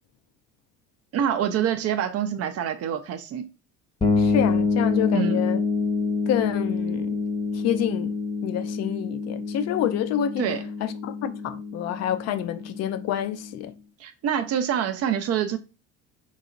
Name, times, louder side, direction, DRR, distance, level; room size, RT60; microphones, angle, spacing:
voice 1, 1.1-3.5 5.1-5.4 10.4-10.6 14.0-15.6, right 9 dB, 40° right, 0.6 m, -26 dB
sound 1, 4.0-13.6, left 4 dB, 15° left, 0.8 m, -27 dB
voice 2, 4.2-5.6 6.3-7.2 7.5-8.1 8.4-10.5 10.8-13.7, left 10 dB, 45° left, 0.5 m, -28 dB
3.9 x 2.8 x 2.5 m
hypercardioid pair, 65°, 37 cm